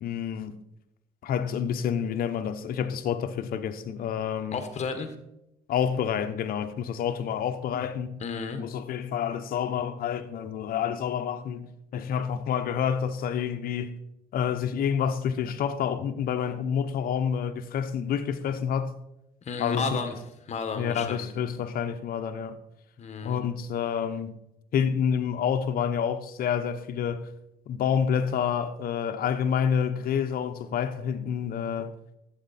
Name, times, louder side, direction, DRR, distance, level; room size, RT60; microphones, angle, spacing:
voice 1, 0.0-0.6 1.2-4.6 5.7-8.2 8.6-13.9 14.3-18.9 19.6-19.9 20.8-22.6 23.2-24.3 24.7-27.3 27.7-31.9, left 8 dB, 60° left, 1.0 m, -28 dB
voice 2, 4.5-5.1 8.2-8.6 19.4-20.1 20.4-21.3 23.0-23.4, left 5 dB, 40° left, 1.5 m, -32 dB
11.5 x 8.1 x 4.3 m
cardioid pair, 110°, 17 cm